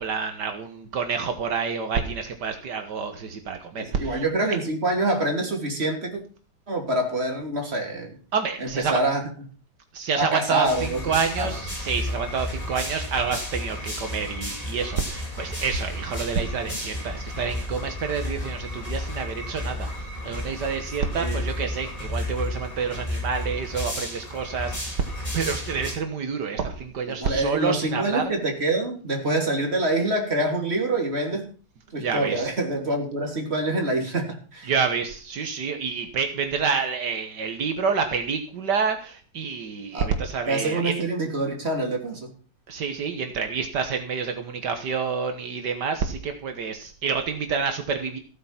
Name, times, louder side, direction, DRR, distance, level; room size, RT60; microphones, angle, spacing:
voice 1, 0.0-4.2 8.3-9.0 9.9-19.9 20.2-25.0 25.3-28.2 32.0-32.5 34.7-40.9 42.7-48.2, right 5 dB, 80° right, 6 dB, 1.9 m, -28 dB
voice 2, 3.8-6.2 6.7-8.1 8.6-9.2 10.2-11.0 11.4-11.5 21.2-21.4 27.1-31.5 31.9-34.7 39.9-40.1 40.5-42.3, right 2 dB, 35° right, 2 dB, 3.4 m, -26 dB
sound 1, 10.7-25.9, left 1 dB, 20° left, 5.3 m, -32 dB
15.0 x 9.4 x 5.8 m, 0.39 s
omnidirectional pair, 1.8 m